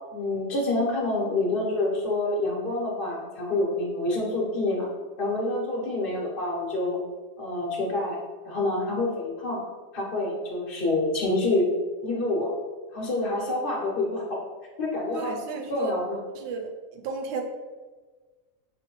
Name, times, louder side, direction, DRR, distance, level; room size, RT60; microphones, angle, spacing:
voice 1, 0.1-4.9 5.2-7.0 7.4-8.2 8.4-9.6 9.9-11.7 12.0-12.5 12.9-14.4 14.8-15.4 15.7-16.2, left 2 dB, 45° left, -3 dB, 1.1 m, -27 dB
voice 2, 15.1-16.0 16.3-17.4, right 3 dB, 65° right, 4 dB, 0.8 m, -33 dB
6.0 x 2.2 x 3.0 m, 1.3 s
omnidirectional pair, 1.4 m